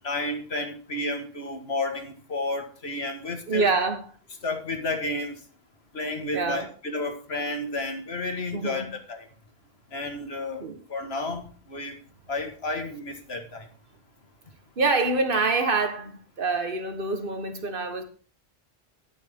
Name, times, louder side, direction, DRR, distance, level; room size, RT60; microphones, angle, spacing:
voice 1, 0.0-3.7 4.4-5.3 5.9-9.3 9.9-12.0 12.3-13.7, left 2 dB, 80° left, 2.0 m, -31 dB
voice 2, 3.5-4.1 6.3-6.7 8.5-8.9 10.6-10.8 14.8-18.0, right 3 dB, 60° right, 1.6 m, -26 dB
11.5 x 9.6 x 3.7 m
omnidirectional pair, 1.0 m